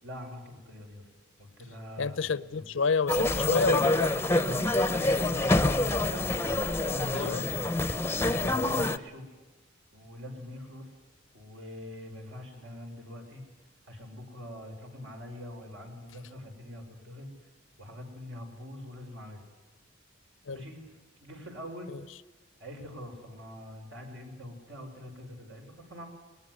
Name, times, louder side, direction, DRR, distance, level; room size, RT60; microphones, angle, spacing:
voice 1, 0.0-1.0 1.4-2.6 4.4-6.2 6.6-7.5 8.2-9.3 9.9-10.9 11.3-13.4 13.9-17.3 17.8-19.4 20.5-20.9 21.2-21.9 22.6-26.1, left 1 dB, 70° right, 5.9 m, -43 dB
voice 2, 2.0-4.1 7.1-7.5 20.5-20.6 21.9-22.0, left 4 dB, 80° left, 0.7 m, -29 dB
sound 1, 3.1-9.0, left 2 dB, 15° left, 0.7 m, -26 dB
20.5 x 20.0 x 9.6 m
head